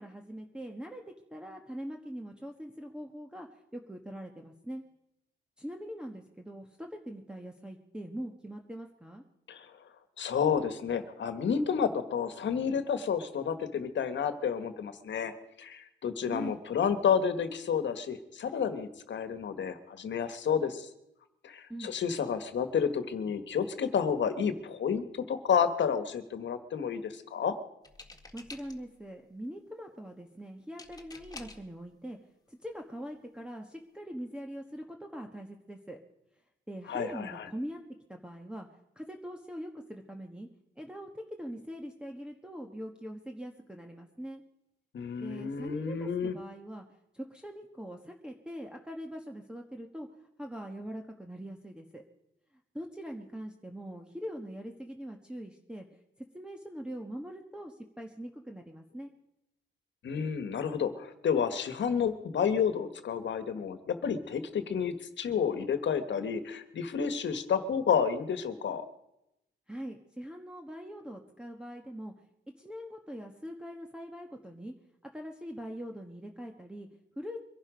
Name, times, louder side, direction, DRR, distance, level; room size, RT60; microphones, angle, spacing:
voice 1, 0.0-4.8 5.6-9.2 16.2-16.6 21.7-21.9 28.3-32.2 32.5-36.0 36.7-37.8 38.1-38.7 38.9-40.5 40.8-44.4 45.2-46.8 47.1-50.1 50.4-52.0 52.7-55.9 56.3-59.1 69.7-72.1 72.6-74.7 75.0-76.9 77.2-77.4, equal, 5° right, 3 dB, 1.3 m, -42 dB
voice 2, 10.2-15.3 15.6-20.9 21.4-27.6 36.9-37.5 44.9-46.4 60.0-68.8, left 7 dB, 65° left, 10 dB, 1.5 m, -30 dB
sound 1, 27.8-29.0 30.8-31.7 32.7-32.8 33.1-33.4, left 3 dB, 20° left, 1.8 m, -49 dB
23.5 x 11.0 x 5.2 m, 0.86 s
cardioid pair, 105°, 20 cm